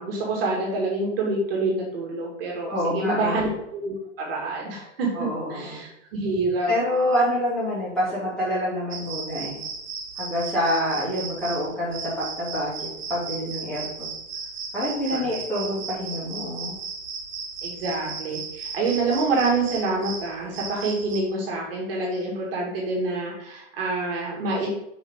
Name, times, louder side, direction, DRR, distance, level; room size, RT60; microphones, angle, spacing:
voice 1, 0.0-6.7 15.1-15.4 17.6-24.7, right 3 dB, 50° right, -2 dB, 2.2 m, -27 dB
voice 2, 2.7-3.4 5.1-5.8 6.7-9.6 10.2-14.1 14.7-16.8, equal, ahead, -10 dB, 2.4 m, -27 dB
sound 1, 8.9-21.2, right 5 dB, 70° right, 1.7 m, -36 dB
6.3 x 5.2 x 3.7 m, 0.79 s
hypercardioid pair, 160°, 38 cm